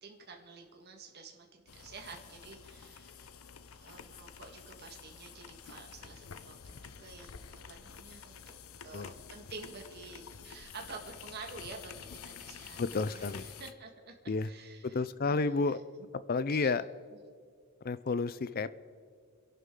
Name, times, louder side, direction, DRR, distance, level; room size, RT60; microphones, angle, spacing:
voice 1, 0.0-3.3 3.8-8.6 8.8-15.8 16.6-16.7 17.1-17.2, right 4 dB, 50° right, 2 dB, 1.7 m, -50 dB
sound 1, 1.7-13.7, left 7 dB, 75° left, 0.7 m, -49 dB
voice 2, 12.8-13.5 14.3-14.5 14.9-15.8 16.3-16.9 17.8-18.8, left 4 dB, 45° left, 15 dB, 0.5 m, -31 dB
27.5 x 11.5 x 3.8 m, 2.1 s
head